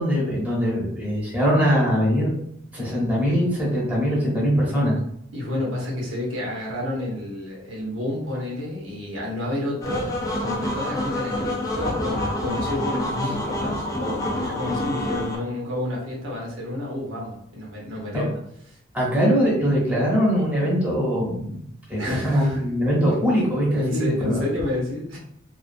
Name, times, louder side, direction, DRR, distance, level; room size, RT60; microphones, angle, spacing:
voice 1, 0.0-2.4 2.7-4.9 18.1-18.2 18.9-21.6 21.9-24.4, equal, 10° right, -6 dB, 0.8 m, -22 dB
voice 2, 5.3-18.4 18.7-18.8 22.0-22.6 23.7-25.2, left 1 dB, 80° right, -3 dB, 0.9 m, -30 dB
sound 1, 9.8-15.4, left 1 dB, 20° left, 0.4 m, -27 dB
2.4 x 2.3 x 2.5 m, 0.72 s
head